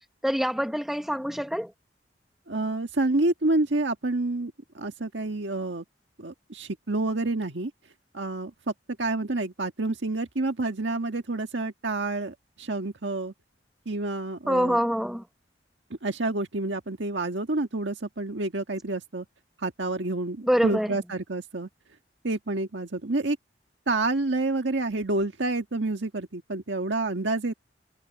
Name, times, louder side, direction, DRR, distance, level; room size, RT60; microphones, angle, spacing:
voice 1, 0.2-1.7 14.5-15.2 20.5-21.0, equal, ahead, 1.2 m, -25 dB
voice 2, 2.5-5.8 6.2-7.7 8.1-8.7 9.0-13.3 13.8-14.8 16.0-19.2 19.6-21.7 22.2-23.4 23.9-27.5, right 2 dB, 90° right, 1.6 m, -28 dB
head